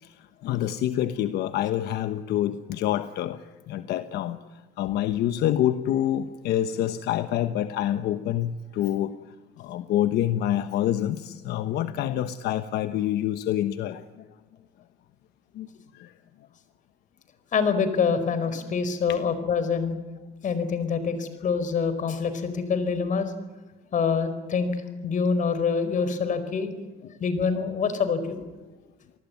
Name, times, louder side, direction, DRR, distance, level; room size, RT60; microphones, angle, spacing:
voice 1, 0.0-4.4 4.8-9.2 9.6-14.3 15.5-15.7 15.9-16.1 19.1-19.2 27.0-27.1, left 12 dB, 75° left, 10 dB, 1.1 m, -27 dB
voice 2, 17.5-19.9 20.4-23.3 23.9-24.7 25.0-26.7 27.2-28.4, left 5 dB, 50° left, 11 dB, 4.8 m, -25 dB
29.0 x 19.0 x 9.5 m, 1.2 s
cardioid pair, 110°, 17 cm